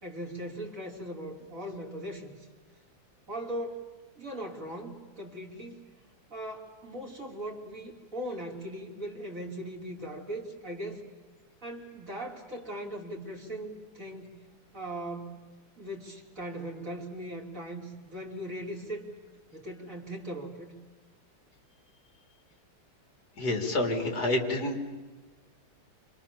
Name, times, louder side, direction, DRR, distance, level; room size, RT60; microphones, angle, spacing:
voice 1, 0.0-2.3 3.3-3.8 4.2-5.8 6.3-11.0 11.6-14.3 14.7-15.4 15.8-19.1 19.5-20.7, right 1 dB, 35° right, -1 dB, 4.5 m, -39 dB
voice 2, 23.4-24.8, left 2 dB, 45° left, 4 dB, 4.2 m, -28 dB
29.0 x 26.5 x 7.3 m, 1.3 s
omnidirectional pair, 2.3 m